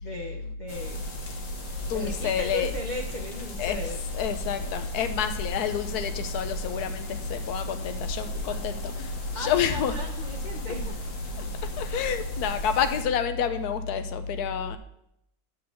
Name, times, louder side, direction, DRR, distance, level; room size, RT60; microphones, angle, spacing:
voice 1, 0.0-1.1 1.9-4.0 9.3-11.0, left 1 dB, 85° left, 2 dB, 0.4 m, -37 dB
sound 1, 0.7-13.0, equal, 50° left, 1.4 m, -37 dB
voice 2, 1.9-2.7 3.6-3.8 4.1-9.9 10.9-11.0 11.4-14.8, left 7 dB, 70° left, 9 dB, 1.2 m, -28 dB
9.4 x 3.9 x 7.0 m, 0.79 s
omnidirectional pair, 1.9 m